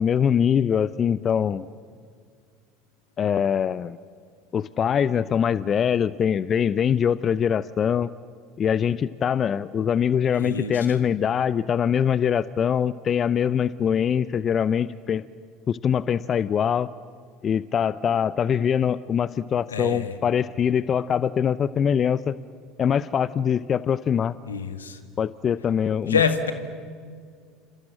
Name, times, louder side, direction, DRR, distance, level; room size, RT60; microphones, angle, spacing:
voice 1, 0.0-1.7 3.2-4.0 4.5-8.1 8.6-15.3 15.7-16.9 17.4-22.4 22.8-24.3 25.2-26.2, left 8 dB, 40° left, 17 dB, 0.7 m, -23 dB
voice 2, 10.4-11.0 19.7-20.2 24.5-25.0 26.1-26.5, left 6 dB, 90° left, 9 dB, 1.9 m, -26 dB
29.0 x 26.5 x 7.5 m, 2.1 s
hypercardioid pair, 75°, 0 cm